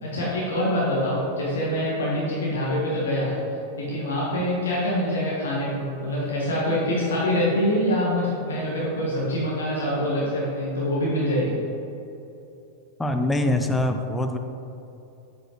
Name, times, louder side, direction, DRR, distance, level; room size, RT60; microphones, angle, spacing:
voice 1, 0.0-3.3 3.8-11.5, equal, 65° left, -7 dB, 1.4 m, -25 dB
voice 2, 13.0-14.4, left 1 dB, 10° left, 5 dB, 0.5 m, -23 dB
7.7 x 4.9 x 3.1 m, 2.8 s
figure-of-eight pair, 90°, 0 cm